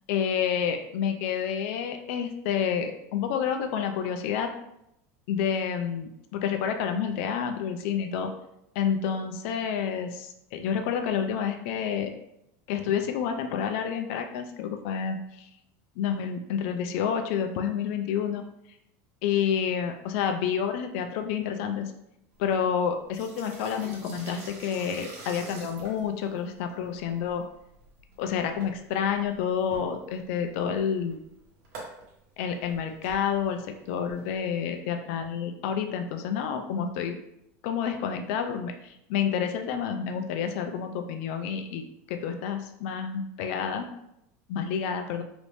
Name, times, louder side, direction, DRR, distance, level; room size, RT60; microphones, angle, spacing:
voice 1, 0.1-4.5 5.3-8.3 8.8-12.1 12.7-15.5 16.0-18.4 19.2-21.9 22.4-27.4 28.2-31.2 32.4-33.6 33.9-37.2 37.6-43.9 44.5-45.2, left 7 dB, 65° left, 6 dB, 0.5 m, -29 dB
sound 1, 22.3-34.8, right 2 dB, 75° right, 1.2 m, -48 dB
3.0 x 2.6 x 3.3 m, 0.80 s
supercardioid pair, 140°, 8 cm